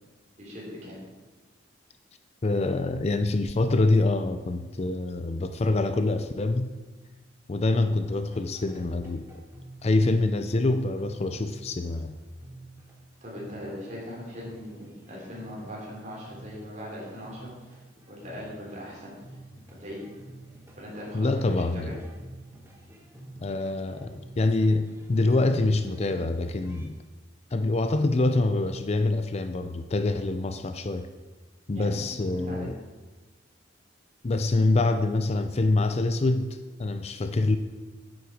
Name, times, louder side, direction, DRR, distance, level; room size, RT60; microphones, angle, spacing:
voice 1, 0.4-1.0 13.2-17.8 18.1-19.1 19.8-20.0 20.8-22.0 31.7-32.0 32.3-32.7, equal, 40° right, -4 dB, 3.7 m, -40 dB
voice 2, 2.4-6.7 7.5-9.3 9.8-12.2 21.1-22.0 23.4-26.9 27.5-31.1 31.7-32.8 34.2-36.5 36.8-37.6, left 2 dB, 35° left, 8 dB, 0.4 m, -25 dB
sound 1, 8.0-26.9, right 1 dB, 15° right, 1.3 m, -50 dB
9.6 x 7.9 x 5.0 m, 1.3 s
head